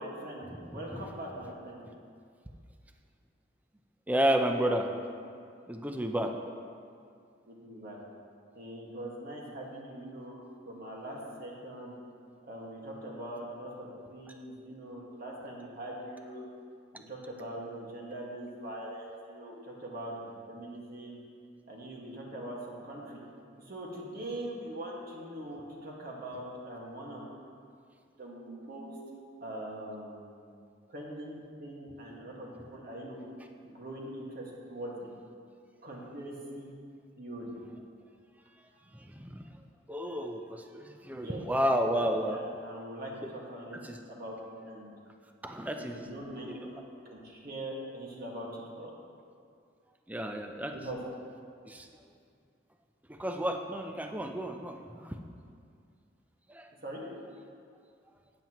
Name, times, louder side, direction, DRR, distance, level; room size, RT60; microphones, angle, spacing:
voice 1, 0.0-1.8 6.1-6.3 7.5-8.0 8.6-12.0 12.4-16.4 16.9-21.2 21.7-23.2 23.6-27.2 28.2-28.9 29.4-30.3 30.9-33.2 33.6-35.1 35.8-36.7 37.2-37.6 41.1-41.4 42.2-43.8 44.0-44.4 44.6-44.9 45.7-48.9 50.7-51.0 56.8-57.0, right 1 dB, 50° right, -3 dB, 1.8 m, -42 dB
voice 2, 4.1-4.9 5.7-6.3 38.9-39.4 39.9-42.4 43.8-44.0 45.4-46.0 46.4-46.6 50.1-50.7 51.7-51.9 53.1-55.2 56.5-56.7, equal, 10° right, 4 dB, 0.5 m, -31 dB
13.0 x 9.2 x 3.0 m, 2.3 s
head